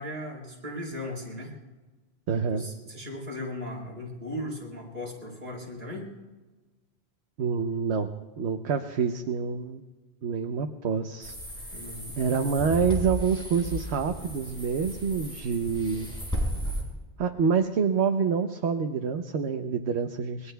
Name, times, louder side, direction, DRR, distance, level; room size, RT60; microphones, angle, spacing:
voice 1, 0.0-1.5 2.5-6.1 11.7-12.2, left 1 dB, 65° right, -3 dB, 4.0 m, -37 dB
voice 2, 2.3-2.6 7.4-8.1 8.4-9.8 10.2-11.3 11.7-11.8 12.2-16.1 17.2-20.5, right 6 dB, 85° right, 5 dB, 1.1 m, -27 dB
sound 1, 11.2-16.8, equal, 5° left, 5.3 m, -34 dB
27.0 x 22.0 x 2.3 m, 1.2 s
omnidirectional pair, 1.1 m